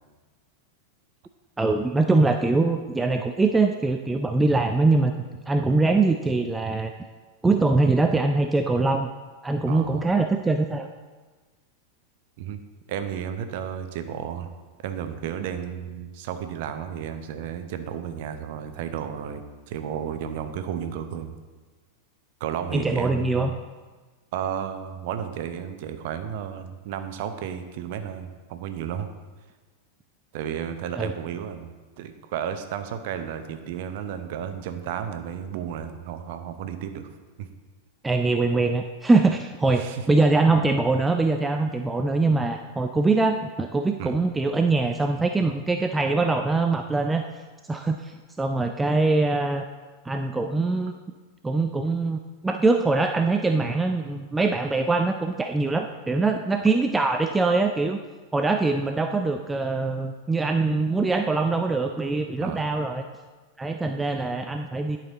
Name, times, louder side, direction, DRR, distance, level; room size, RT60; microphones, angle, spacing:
voice 1, 1.6-5.1 5.5-6.9 7.4-9.1 9.4-10.9 22.7-23.5 31.0-31.1 38.0-47.2 47.7-49.6 50.0-50.9 51.4-58.0 58.3-63.0 63.6-65.0, right 3 dB, 10° right, 5 dB, 0.4 m, -23 dB
voice 2, 9.7-10.1 12.4-12.6 12.9-14.5 14.8-21.3 22.4-23.5 24.3-29.1 30.3-37.1 37.4-37.5 39.8-40.1 44.0-44.1 62.4-62.7, right 9 dB, 50° right, 9 dB, 0.7 m, -33 dB
11.0 x 5.7 x 3.9 m, 1.3 s
figure-of-eight pair, 90°, 0 cm